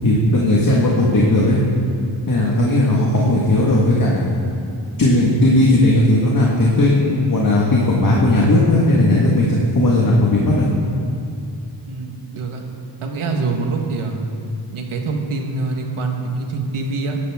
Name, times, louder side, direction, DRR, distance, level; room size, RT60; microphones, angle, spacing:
voice 1, 0.0-1.6 2.3-4.4 5.0-10.7, left 1 dB, 45° left, -4 dB, 1.7 m, -16 dB
voice 2, 11.9-12.6 13.0-14.2 14.7-17.2, right 3 dB, 90° right, 2 dB, 1.6 m, -25 dB
15.0 x 12.5 x 3.6 m, 2.4 s
wide cardioid pair, 115°, 48 cm